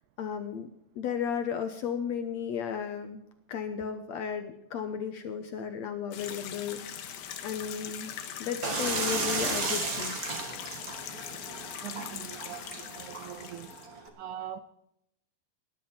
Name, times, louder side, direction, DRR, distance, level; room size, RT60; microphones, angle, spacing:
voice 1, 0.2-0.7 1.0-3.2 3.5-7.1 7.4-8.1 8.4-10.2, left 7 dB, 70° left, 1.8 m, -34 dB
sound 1, 6.1-13.9, left 9 dB, 90° left, 3.1 m, -41 dB
sound 2, 8.6-14.1, right 3 dB, 35° right, 1.8 m, -34 dB
voice 2, 11.8-13.7 14.1-14.6, right 10 dB, 75° right, 1.9 m, -42 dB
19.5 x 11.5 x 4.3 m
omnidirectional pair, 4.1 m